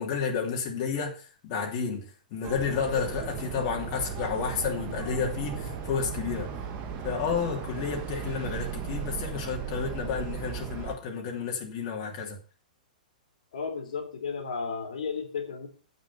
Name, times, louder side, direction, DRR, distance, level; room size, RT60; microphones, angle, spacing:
voice 1, 0.0-6.6 7.0-12.4, left 6 dB, 40° left, 2.9 m, -31 dB
sound 1, 2.4-11.0, right 7 dB, 35° right, 1.9 m, -36 dB
voice 2, 13.5-15.7, left 5 dB, 60° left, 3.2 m, -33 dB
9.4 x 8.3 x 5.6 m
figure-of-eight pair, 110°, 5 cm